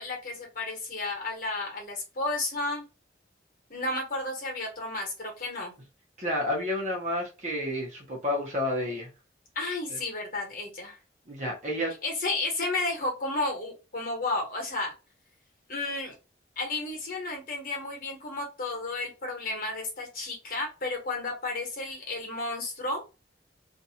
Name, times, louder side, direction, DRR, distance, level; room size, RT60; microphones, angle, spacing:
voice 1, 0.0-2.8 3.7-5.7 9.5-10.9 12.0-14.9 15.7-16.1 16.6-23.0, left 2 dB, 50° left, 1.1 m, -32 dB
voice 2, 6.2-9.1 11.3-11.9, left 1 dB, 40° right, 0.9 m, -30 dB
2.6 x 2.3 x 2.8 m
head